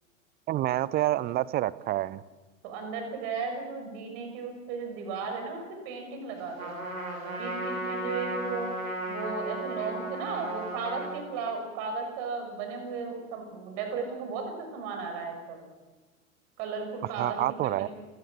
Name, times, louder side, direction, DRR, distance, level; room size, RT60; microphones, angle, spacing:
voice 1, 0.5-2.2 17.2-17.9, right 14 dB, 25° right, 20 dB, 0.6 m, -28 dB
voice 2, 2.6-6.8 7.2-8.7 9.1-15.6 16.6-17.9, right 5 dB, 45° right, 4 dB, 6.5 m, -35 dB
Trumpet, 6.6-11.2, right 1 dB, 75° right, 6.1 m, -35 dB
29.0 x 18.0 x 6.5 m, 1.2 s
figure-of-eight pair, 90°, 42 cm